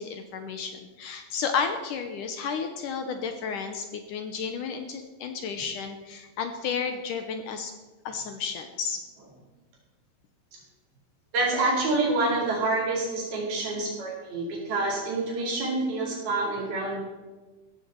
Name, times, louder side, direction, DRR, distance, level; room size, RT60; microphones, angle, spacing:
voice 1, 0.0-7.7 8.1-9.0, left 6 dB, 70° left, 6 dB, 2.2 m, -32 dB
voice 2, 11.3-17.0, right 2 dB, 75° right, -3 dB, 6.3 m, -27 dB
16.0 x 14.0 x 4.6 m, 1.2 s
omnidirectional pair, 4.4 m